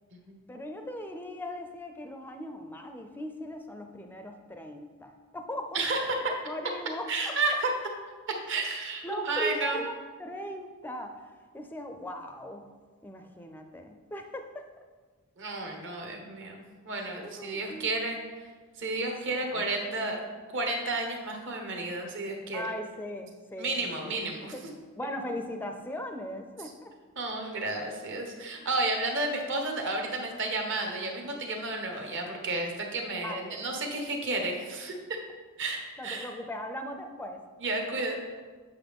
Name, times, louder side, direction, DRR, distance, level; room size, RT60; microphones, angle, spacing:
voice 1, 0.5-7.3 9.0-12.7 13.0-14.6 17.2-17.9 19.4-19.7 22.5-24.1 24.5-24.6 25.0-26.9 33.2-33.6 36.0-37.4, equal, 10° left, 5 dB, 0.4 m, -39 dB
voice 2, 5.7-6.1 7.1-7.7 8.5-9.8 15.4-16.6 16.8-18.5 18.8-20.2 20.5-22.6 23.6-24.5 27.2-34.9 35.6-36.3 37.6-38.2, right 2 dB, 55° right, 2 dB, 1.2 m, -32 dB
8.3 x 5.7 x 3.6 m, 1.4 s
head